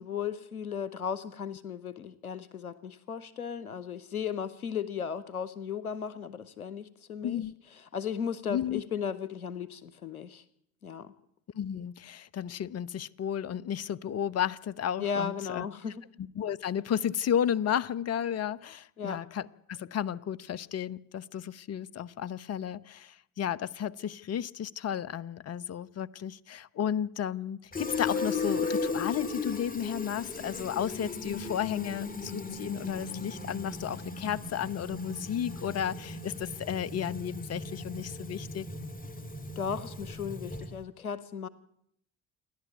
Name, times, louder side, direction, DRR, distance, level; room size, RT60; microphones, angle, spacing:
voice 1, 0.0-7.4 7.9-10.4 10.8-11.1 15.0-16.0 19.0-19.2 39.6-41.5, left 7 dB, 90° left, 18 dB, 0.8 m, -36 dB
voice 2, 7.2-7.5 8.5-8.8 11.5-15.7 16.2-38.7, left 9 dB, 35° left, 21 dB, 0.9 m, -33 dB
Fill (with liquid), 27.7-40.8, left 3 dB, 20° left, 2.6 m, -36 dB
28.5 x 11.5 x 9.6 m, 0.72 s
figure-of-eight pair, 50°, 42 cm